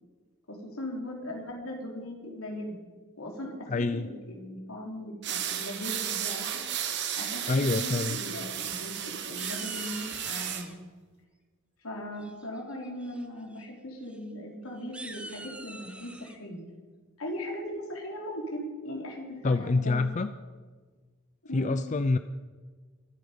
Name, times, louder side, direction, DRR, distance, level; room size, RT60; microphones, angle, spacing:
voice 1, 0.5-2.8 3.2-6.6 7.2-10.7 11.8-16.6 17.2-20.1 21.5-21.8, equal, 80° left, 0 dB, 3.6 m, -38 dB
voice 2, 3.7-4.1 7.5-8.2 19.4-20.3 21.5-22.2, left 3 dB, 35° left, 11 dB, 0.4 m, -26 dB
sound 1, 5.2-10.7, right 9 dB, 55° right, 1.4 m, -34 dB
sound 2, 8.5-9.0 9.4-10.7 12.2-12.6 13.0-13.2 13.5-13.6 14.0-14.2 14.8-16.4, right 1 dB, 5° right, 0.9 m, -45 dB
23.5 x 9.3 x 5.2 m, 1.4 s
head